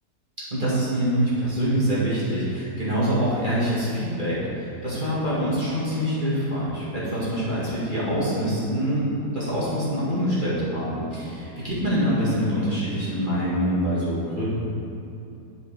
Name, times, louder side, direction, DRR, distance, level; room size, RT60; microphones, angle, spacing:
voice 1, 0.5-9.1 9.3-14.4, equal, 30° right, -10 dB, 2.1 m, -25 dB
11.0 x 5.3 x 3.6 m, 2.8 s
omnidirectional pair, 1.8 m